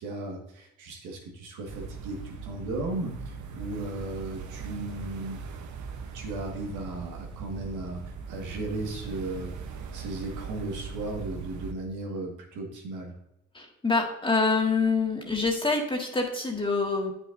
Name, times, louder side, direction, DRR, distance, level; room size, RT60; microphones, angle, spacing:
voice 1, 0.0-5.4 6.1-9.5 9.9-13.1, right 2 dB, 90° right, 1 dB, 1.9 m, -36 dB
sound 1, 1.7-11.7, right 5 dB, 75° right, 1.0 m, -40 dB
voice 2, 13.5-17.1, left 4 dB, 15° left, 1 dB, 1.9 m, -26 dB
9.5 x 6.2 x 2.7 m, 0.85 s
cardioid pair, 90°, 30 cm